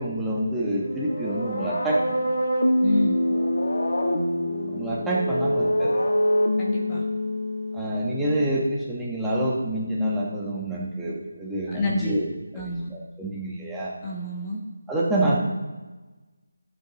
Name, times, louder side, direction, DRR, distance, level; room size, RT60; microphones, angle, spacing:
voice 1, 0.0-2.3 4.7-6.0 7.7-12.2 12.5-13.9 14.9-15.4, right 1 dB, 5° right, -6 dB, 1.4 m, -27 dB
sound 1, 0.7-8.5, left 1 dB, 75° left, 1.5 m, -25 dB
voice 2, 2.8-3.2 6.6-7.0 11.7-12.2 12.5-12.9 14.0-14.6, left 2 dB, 20° left, -3 dB, 1.2 m, -28 dB
13.5 x 7.6 x 3.2 m, 1.2 s
figure-of-eight pair, 160°, 0 cm